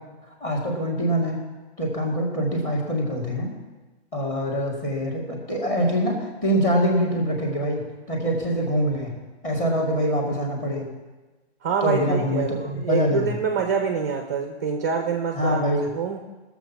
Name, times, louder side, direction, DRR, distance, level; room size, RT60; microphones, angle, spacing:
voice 1, 0.3-1.4 1.8-3.5 4.1-9.2 9.4-10.9 11.8-13.3 15.4-15.9, equal, 15° left, 0 dB, 1.8 m, -24 dB
voice 2, 11.6-15.6 15.9-16.2, right 6 dB, 15° right, 4 dB, 0.4 m, -26 dB
18.0 x 7.2 x 5.8 m, 1.2 s
hypercardioid pair, 180°, 33 cm